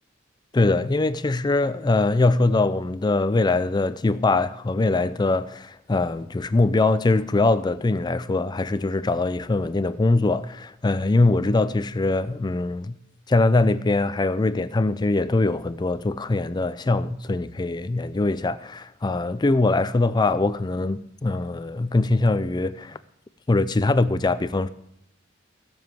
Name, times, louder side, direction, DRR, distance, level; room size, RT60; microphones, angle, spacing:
voice 1, 0.5-13.0 13.3-23.0 23.5-24.7, left 2 dB, 20° left, 0.4 m, -22 dB
15.5 x 7.1 x 7.5 m
head